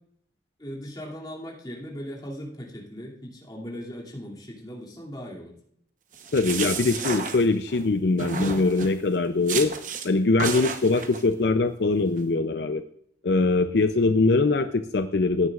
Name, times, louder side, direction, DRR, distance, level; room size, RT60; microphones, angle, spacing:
voice 1, 0.6-5.5, equal, 20° left, -3 dB, 2.6 m, -38 dB
sound 1, 6.1-7.8 8.2-9.0 9.5-10.1 10.4-11.2, right 5 dB, 45° right, 0.9 m, -31 dB
voice 2, 6.3-9.7 10.0-12.8 13.2-15.5, left 3 dB, 65° left, 9 dB, 0.5 m, -22 dB
16.5 x 9.4 x 2.4 m, 0.67 s
head